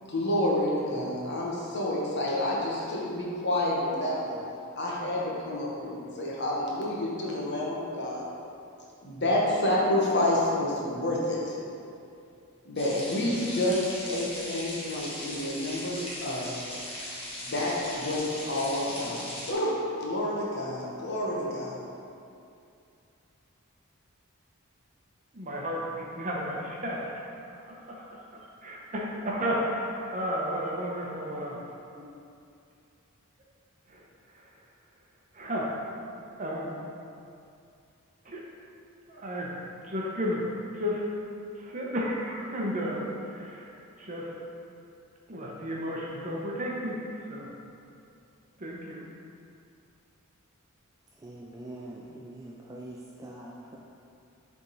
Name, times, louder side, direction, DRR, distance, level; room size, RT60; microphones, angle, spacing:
voice 1, 0.0-4.4 4.8-8.3 9.0-11.6 12.6-13.8 14.1-16.6 17.4-19.2 19.5-19.7 20.0-21.7, left 1 dB, 50° left, -4 dB, 1.1 m, -29 dB
sound 1, 12.8-19.5, left 1 dB, 25° left, 1.2 m, -39 dB
voice 2, 25.3-28.2 28.6-31.6 31.9-32.0 33.9-34.5 35.3-35.8 36.4-36.8 38.2-38.4 39.1-39.5 39.8-40.4 40.7-41.1 41.5-43.7 44.0-44.3 45.3-47.5 48.6-49.0, equal, 35° right, -3 dB, 0.9 m, -33 dB
voice 3, 51.2-53.8, right 1 dB, 15° right, -3 dB, 0.4 m, -43 dB
6.9 x 3.6 x 4.0 m, 2.6 s
head